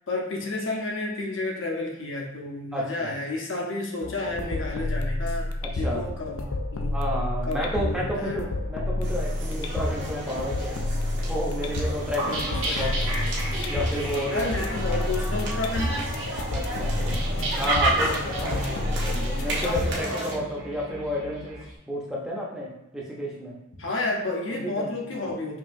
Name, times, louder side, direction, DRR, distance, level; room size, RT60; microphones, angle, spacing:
voice 1, 0.1-7.0 7.5-8.4 12.3-12.4 12.7-12.9 14.3-16.0 18.4-18.8 23.8-25.6, left 2 dB, 70° left, 0 dB, 0.8 m, -31 dB
voice 2, 2.7-3.1 5.6-6.0 6.9-10.8 11.3-12.5 12.8-13.3 13.7-14.5 16.5-17.0 17.6-18.6 18.9-21.6 21.9-23.5 24.5-25.3, equal, 5° right, -5 dB, 0.7 m, -31 dB
sound 1, 4.0-20.0, left 2 dB, 85° left, 0.5 m, -30 dB
sound 2, 9.0-20.3, right 1 dB, 55° right, 1.0 m, -32 dB
sound 3, 12.2-21.6, right 1 dB, 85° right, 1.1 m, -34 dB
5.5 x 2.8 x 2.6 m, 0.94 s
head